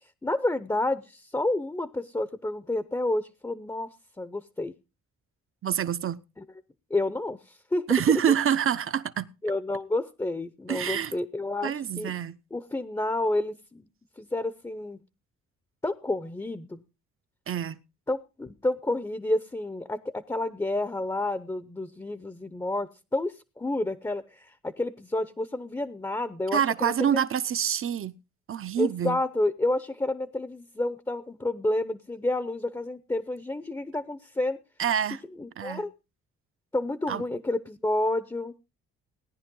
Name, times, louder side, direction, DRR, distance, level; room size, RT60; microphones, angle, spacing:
voice 1, 0.2-3.9 4.2-4.7 6.4-6.5 6.9-7.8 9.4-12.1 12.5-13.9 14.2-15.0 15.8-16.8 18.1-27.2 28.8-34.6 35.4-35.9 36.7-38.5, left 2 dB, 10° left, 0.8 m, -30 dB
voice 2, 5.6-6.2 7.9-9.3 10.7-11.1 11.6-12.4 17.5-17.8 26.5-28.1 28.5-29.2 34.8-35.2 35.6-35.8 37.1-37.2, right 9 dB, 45° right, 0.9 m, -26 dB
18.0 x 10.0 x 3.8 m
cardioid pair, 90°, 30 cm